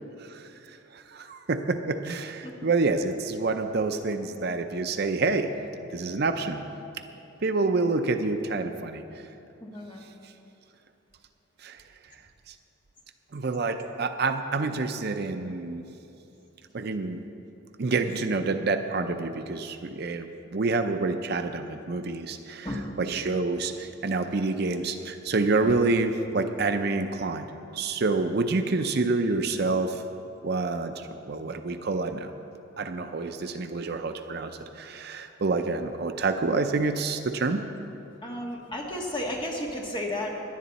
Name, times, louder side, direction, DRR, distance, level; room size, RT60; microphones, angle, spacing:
voice 1, 0.9-5.5 5.9-6.6 7.4-9.0 11.6-11.8 13.3-15.8 16.7-17.2 17.8-22.7 23.0-27.5 27.7-30.0 30.4-32.3 32.8-37.6, right 3 dB, 50° right, 7 dB, 0.5 m, -27 dB
voice 2, 9.6-10.0 22.6-22.9 38.2-40.4, left 1 dB, 25° left, -1 dB, 1.7 m, -33 dB
18.0 x 11.0 x 4.1 m, 2.9 s
head